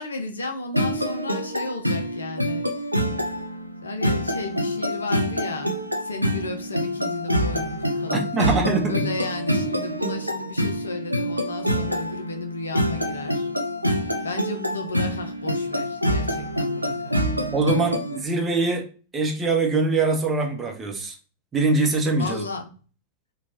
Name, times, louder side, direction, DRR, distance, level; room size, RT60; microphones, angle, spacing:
voice 1, 0.0-2.6 3.8-5.8 6.0-8.6 8.9-13.5 14.2-17.3 22.2-22.6, left 2 dB, 75° left, 0.4 m, -33 dB
sound 1, 0.7-18.2, equal, 90° right, 0.3 m, -26 dB
voice 2, 8.1-9.1 17.5-18.9 19.1-21.1 21.5-22.4, right 3 dB, 20° right, 0.7 m, -23 dB
2.9 x 2.2 x 2.7 m
figure-of-eight pair, 90°, 0 cm